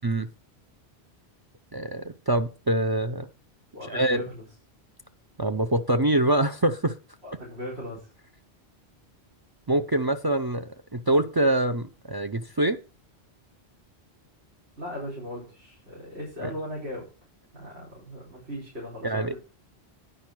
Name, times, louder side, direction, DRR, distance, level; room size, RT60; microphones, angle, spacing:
voice 1, 1.7-3.3 3.9-4.2 5.4-6.9 9.7-12.8 19.0-19.3, right 1 dB, 40° right, 9 dB, 0.3 m, -25 dB
voice 2, 3.7-4.4 7.2-8.1 14.8-17.1 17.5-19.4, left 1 dB, 90° right, -4 dB, 4.3 m, -38 dB
10.0 x 5.2 x 6.0 m, 0.35 s
omnidirectional pair, 1.1 m